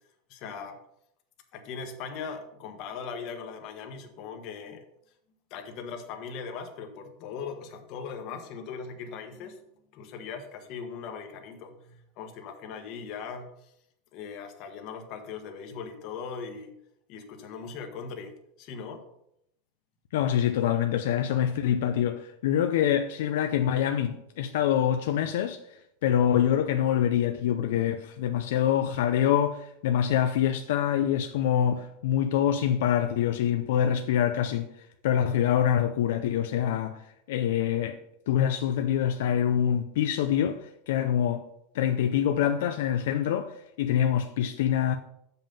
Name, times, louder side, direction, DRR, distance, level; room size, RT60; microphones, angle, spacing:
voice 1, 0.3-0.8 1.5-4.8 5.5-9.6 9.9-13.7 14.1-16.7 17.1-19.0, left 6 dB, 40° left, 1.2 m, -39 dB
voice 2, 20.1-34.7 35.0-37.0 37.3-38.0 38.3-41.4 41.7-45.0, left 10 dB, 75° left, 0.5 m, -25 dB
7.1 x 5.6 x 5.4 m
supercardioid pair, 165°, 0 cm